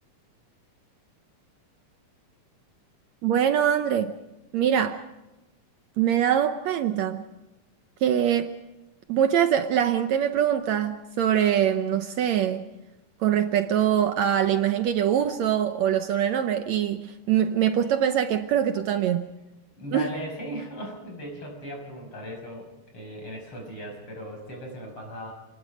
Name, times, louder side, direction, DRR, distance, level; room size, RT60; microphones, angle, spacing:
voice 1, 3.2-4.1 4.5-5.0 6.0-7.2 8.0-8.5 9.1-12.7 13.2-19.3 19.9-20.1, right 9 dB, 70° right, 8 dB, 2.0 m, -23 dB
voice 2, 19.8-22.7 22.9-25.3, equal, 40° left, 2 dB, 6.9 m, -37 dB
29.5 x 20.5 x 5.2 m, 1.0 s
omnidirectional pair, 3.6 m